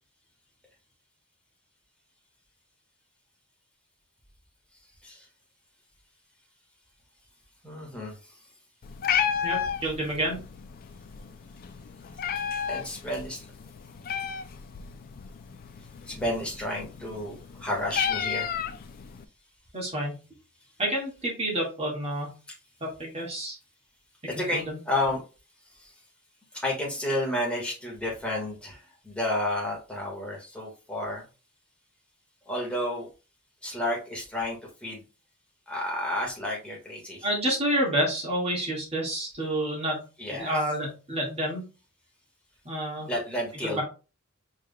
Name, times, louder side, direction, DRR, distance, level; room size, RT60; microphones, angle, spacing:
voice 1, 7.6-8.1 12.7-13.5 16.1-18.5 24.3-25.2 25.8-25.9 26.6-31.2 32.5-33.1 33.6-35.0 35.7-37.3 40.2-40.5 43.1-43.8, left 1 dB, 5° left, -3 dB, 1.6 m, -31 dB
Meow, 8.8-19.2, left 8 dB, 40° left, 0.3 m, -33 dB
voice 2, 9.4-10.4 19.7-20.2 20.8-22.3 22.8-23.6 24.4-24.8 37.2-40.0 40.4-41.6 42.7-43.1 43.6-43.8, right 1 dB, 30° right, -3 dB, 1.8 m, -29 dB
4.7 x 3.5 x 2.3 m, 0.32 s
head